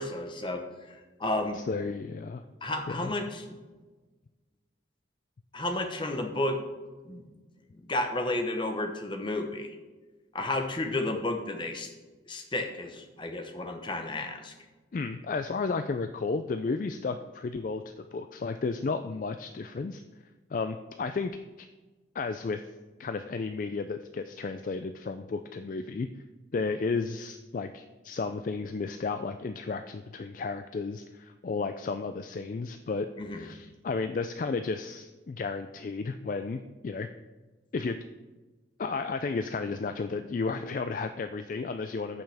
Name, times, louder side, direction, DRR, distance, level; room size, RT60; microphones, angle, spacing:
voice 1, 0.0-1.6 2.6-3.6 5.5-6.6 7.0-7.2 7.7-9.7 10.3-11.9 12.3-14.5 33.2-33.5, left 2 dB, 25° left, 5 dB, 0.9 m, -32 dB
voice 2, 1.5-2.4 2.9-3.1 14.9-20.0 20.5-21.7 22.1-22.6 23.0-26.1 26.5-37.1 37.7-38.0 38.8-42.2, left 4 dB, 45° left, 8 dB, 0.3 m, -33 dB
14.5 x 5.6 x 3.4 m, 1.2 s
head